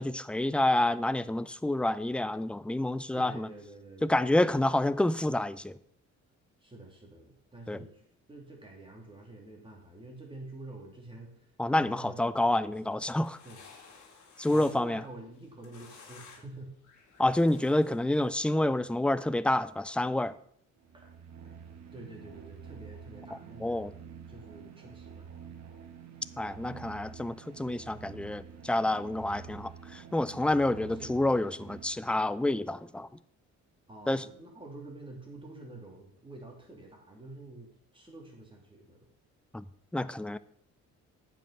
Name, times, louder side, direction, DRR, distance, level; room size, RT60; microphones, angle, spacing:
voice 1, 0.0-3.5 4.0-5.7 7.7-7.8 11.6-13.3 14.4-15.0 17.2-20.3 23.6-23.9 26.4-33.1 34.1-34.2 39.5-39.6 39.9-40.4, left 1 dB, 5° left, 0.3 m, -28 dB
voice 2, 3.1-4.4 6.6-8.0 8.3-13.0 13.4-13.6 14.4-16.7 20.9-21.1 21.9-25.3 30.9-31.2 33.9-39.1, right 2 dB, 15° right, 3.0 m, -48 dB
sound 1, 12.9-14.9 15.3-16.5 16.8-18.3, left 5 dB, 75° left, 2.2 m, -54 dB
sound 2, 20.8-32.5, right 7 dB, 60° right, 1.5 m, -48 dB
8.9 x 6.0 x 5.7 m
cardioid pair, 90°, 30 cm